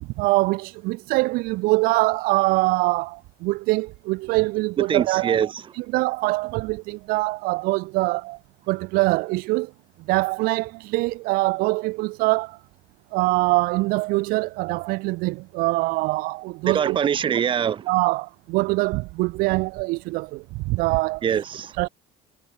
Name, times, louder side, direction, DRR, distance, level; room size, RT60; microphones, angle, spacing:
voice 1, 0.2-8.4 8.7-9.7 10.1-12.6 13.1-17.0 17.9-21.2 21.8-21.9, right 23 dB, 75° right, 1.9 m, -23 dB
voice 2, 4.8-5.6 16.6-17.9 21.2-21.7, right 8 dB, 35° right, 3.9 m, -23 dB
cardioid pair, 155°, 15 cm